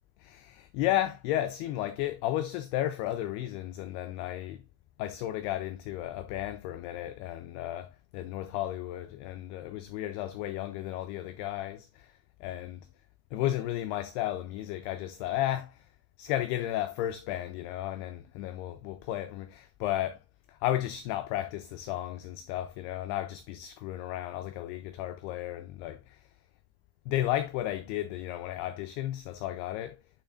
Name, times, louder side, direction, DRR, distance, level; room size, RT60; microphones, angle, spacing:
voice 1, 0.2-4.6 5.0-12.9 13.3-15.9 16.2-20.2 20.5-26.3 27.1-30.0, left 13 dB, 85° left, 2.3 m, -33 dB
8.8 x 5.6 x 2.4 m
omnidirectional pair, 5.1 m